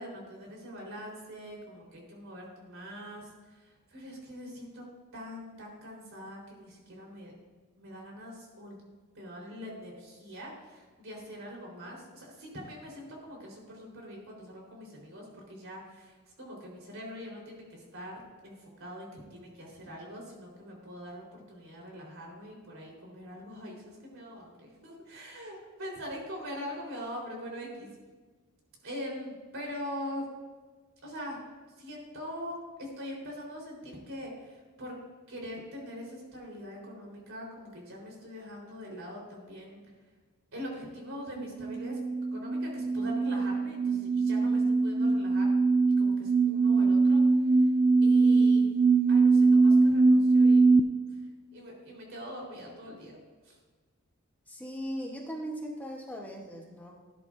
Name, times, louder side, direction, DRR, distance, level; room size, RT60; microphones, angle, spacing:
voice 1, 0.0-4.8 5.1-7.3 7.8-8.8 9.1-27.9 28.8-30.3 31.0-31.4 31.8-35.0 35.3-39.8 40.5-42.0 42.3-45.6 46.0-47.7 48.0-48.7 49.1-50.7 51.1-51.2 51.5-53.2 53.4-53.6, equal, 65° right, -2 dB, 3.9 m, -43 dB
sound 1, 41.4-50.8, right 3 dB, 30° right, 0.3 m, -22 dB
voice 2, 54.5-57.0, equal, 10° left, -1 dB, 1.0 m, -39 dB
17.0 x 10.5 x 2.6 m, 1.4 s
head